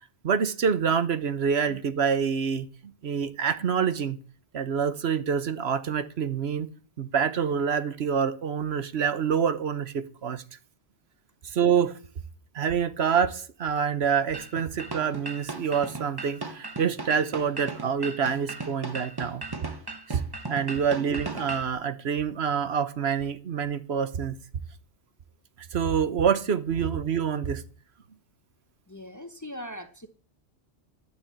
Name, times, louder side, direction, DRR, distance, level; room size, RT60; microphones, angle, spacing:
voice 1, 0.2-2.7 3.0-4.2 4.5-6.7 7.0-10.4 11.4-12.0 12.5-19.4 20.1-20.2 20.5-24.4 25.6-27.6, right 7 dB, 65° right, 13 dB, 1.2 m, -26 dB
sound 1, 14.3-21.7, right 3 dB, 20° right, 1.1 m, -37 dB
voice 2, 28.9-30.1, equal, 20° left, 9 dB, 0.8 m, -40 dB
11.0 x 6.9 x 8.2 m, 0.41 s
omnidirectional pair, 1.2 m